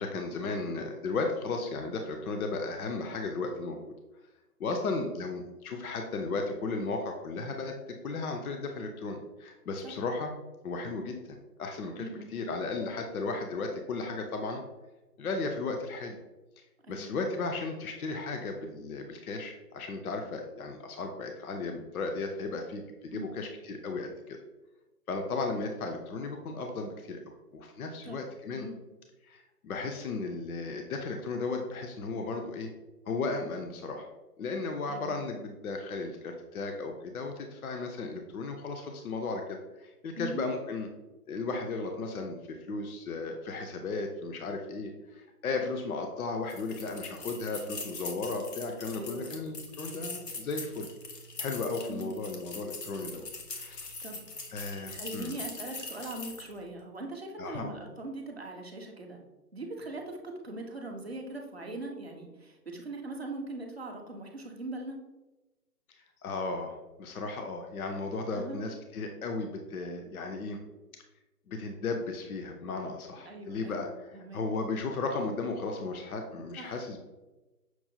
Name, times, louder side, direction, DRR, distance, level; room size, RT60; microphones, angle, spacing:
voice 1, 0.0-3.8 4.6-7.7 8.0-10.3 10.6-14.6 15.2-16.2 16.9-24.4 25.1-27.2 27.5-28.7 29.2-32.7 33.1-34.1 34.4-40.9 41.3-50.9 51.4-53.9 54.5-55.4 57.4-57.7 66.0-70.6 71.5-77.0, left 3 dB, 65° left, 4 dB, 0.6 m, -35 dB
voice 2, 16.8-17.1 23.1-23.3 28.0-28.2 28.5-28.8 34.9-35.2 40.2-40.4 48.9-49.4 51.9-52.1 54.0-54.2 54.9-59.2 59.5-65.0 68.3-68.6 73.3-74.4 76.6-76.8, right 2 dB, 45° right, 1 dB, 0.5 m, -41 dB
sound 1, 46.5-56.6, left 3 dB, 85° left, 1.0 m, -42 dB
6.0 x 2.1 x 2.7 m, 1.1 s
hypercardioid pair, 175°, 48 cm